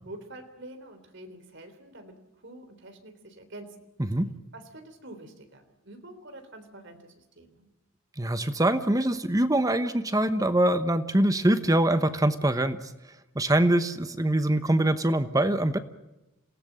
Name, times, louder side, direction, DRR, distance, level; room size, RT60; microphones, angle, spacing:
voice 1, 0.0-2.1 2.4-3.7 4.5-7.7, right 1 dB, 55° right, 6 dB, 3.5 m, -46 dB
voice 2, 4.0-4.3 8.2-12.9 13.3-15.8, right 1 dB, 15° right, 10 dB, 1.0 m, -24 dB
27.5 x 17.5 x 7.5 m, 0.96 s
head